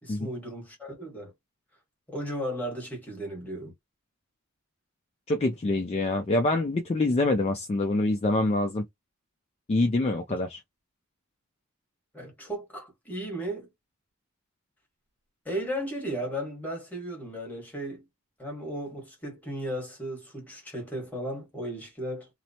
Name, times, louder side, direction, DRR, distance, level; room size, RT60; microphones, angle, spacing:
voice 1, 0.0-1.3 2.1-3.7 12.1-13.7 15.4-18.0 18.4-22.3, equal, 10° left, 1.3 m, -35 dB
voice 2, 5.3-8.8 9.7-10.6, left 2 dB, 30° left, 0.3 m, -25 dB
2.9 x 2.0 x 2.7 m
head